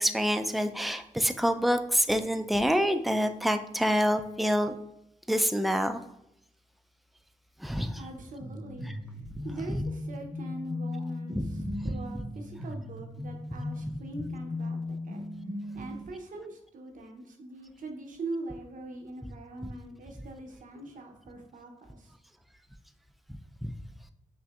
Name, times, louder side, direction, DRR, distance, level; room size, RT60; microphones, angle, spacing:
voice 1, 0.0-4.7 5.3-6.0 7.6-8.1 8.9-9.0 9.6-9.8 11.3-11.4 11.8-12.0 13.9-14.0 23.6-23.7, equal, ahead, 8 dB, 0.3 m, -27 dB
voice 2, 8.0-8.9 9.4-15.2 15.7-22.1, right 2 dB, 80° right, 3 dB, 0.7 m, -42 dB
sound 1, 8.4-16.0, left 2 dB, 80° left, 0.9 m, -37 dB
5.7 x 2.6 x 2.3 m, 0.83 s
cardioid pair, 75°, 13 cm